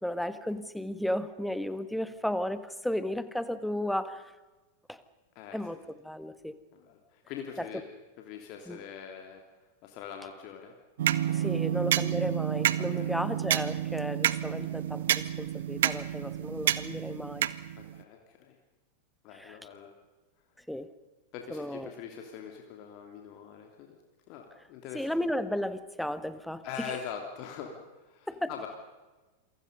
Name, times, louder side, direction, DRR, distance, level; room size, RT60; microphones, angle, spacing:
voice 1, 0.0-4.3 4.9-5.0 5.5-6.5 7.6-7.7 8.7-8.8 11.3-17.5 19.3-19.6 20.7-20.9 21.5-21.9 24.9-27.0 28.3-28.7, left 1 dB, ahead, 13 dB, 1.5 m, -34 dB
voice 2, 5.3-5.8 6.7-7.8 8.2-9.4 9.8-10.7 11.3-11.7 13.0-13.1 17.8-18.5 19.2-19.9 21.3-23.9 24.3-25.1 26.6-27.8 28.0-28.7, left 7 dB, 40° left, 2 dB, 3.1 m, -43 dB
sound 1, 11.0-18.0, right 11 dB, 60° right, 0.9 m, -29 dB
28.0 x 24.0 x 5.4 m, 1.2 s
figure-of-eight pair, 90°, 0 cm